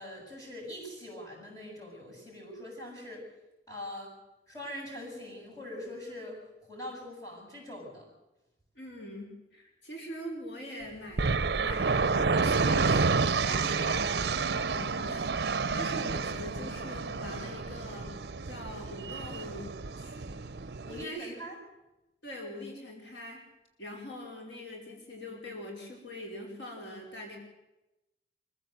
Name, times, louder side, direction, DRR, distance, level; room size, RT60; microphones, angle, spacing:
voice 1, 0.0-3.2 3.7-4.1 4.5-6.4 6.7-8.1 20.9-21.6, equal, 20° left, -1 dB, 7.8 m, -42 dB
voice 2, 8.7-11.3 11.6-13.1 13.4-14.1 14.5-19.7 20.0-20.3 20.8-21.3 22.2-23.4 23.8-27.4, left 1 dB, 80° left, 0 dB, 4.8 m, -43 dB
sound 1, 11.2-21.0, right 4 dB, 60° right, 0.7 m, -29 dB
24.5 x 15.0 x 8.0 m, 0.97 s
head